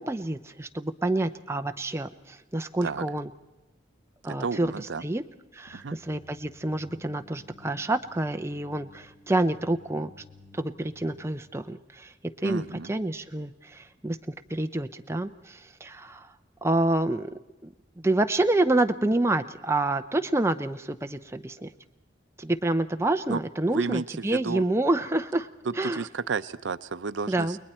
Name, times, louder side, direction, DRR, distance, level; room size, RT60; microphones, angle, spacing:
voice 1, 0.0-3.3 4.2-5.2 5.5-10.1 10.5-12.1 12.4-14.2 14.5-16.3 16.6-17.7 18.0-21.7 22.4-25.5 25.8-26.1 27.3-27.6, right 2 dB, 15° right, 7 dB, 0.6 m, -28 dB
voice 2, 4.4-5.0 5.7-6.0 12.4-12.9 23.3-23.4 23.7-24.6 25.7-27.6, right 4 dB, 80° right, 13 dB, 0.6 m, -32 dB
sound 1, 5.7-11.4, left 2 dB, 25° left, 3.6 m, -54 dB
29.5 x 21.0 x 4.3 m, 1.0 s
head